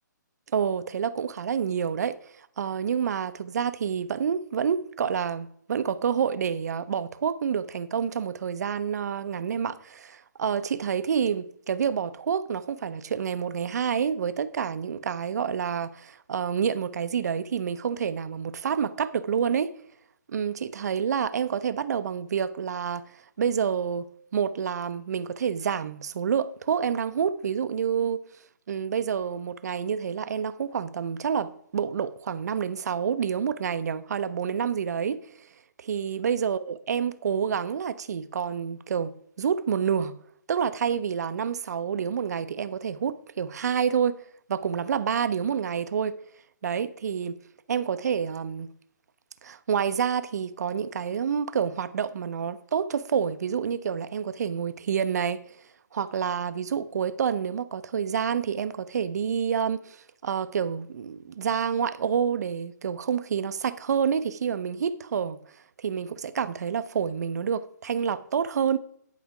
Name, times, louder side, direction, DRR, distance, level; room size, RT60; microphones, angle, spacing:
voice 1, 0.5-2.2 2.6-19.7 20.3-23.0 23.4-24.1 24.3-28.2 28.7-35.2 35.8-40.2 40.5-44.2 44.5-46.2 46.6-47.3 47.7-48.7 49.4-55.4 55.9-65.4 65.8-68.8, right 7 dB, 60° right, 0.7 m, -28 dB
10.5 x 4.9 x 4.7 m
hypercardioid pair, 150°, 10 cm